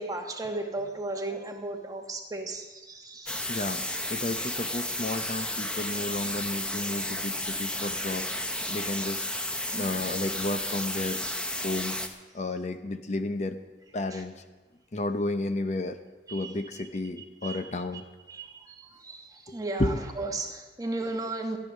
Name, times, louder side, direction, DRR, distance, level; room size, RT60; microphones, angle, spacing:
voice 1, 0.0-3.6 5.7-5.8 7.0-7.1 7.3-7.5 8.0-8.3 9.6-10.0 14.1-14.2 16.3-16.8 17.4-17.7 18.3-21.6, right 2 dB, 20° right, 4 dB, 1.3 m, -36 dB
sound 1, 3.3-12.1, left 1 dB, 5° left, 0.8 m, -32 dB
voice 2, 3.5-3.8 4.1-8.3 8.7-9.3 9.7-11.2 11.6-12.0 12.3-13.6 13.9-14.4 14.9-16.0 16.3-18.0 19.5-20.0, left 2 dB, 40° left, 8 dB, 0.7 m, -32 dB
14.0 x 10.5 x 6.5 m, 1.2 s
head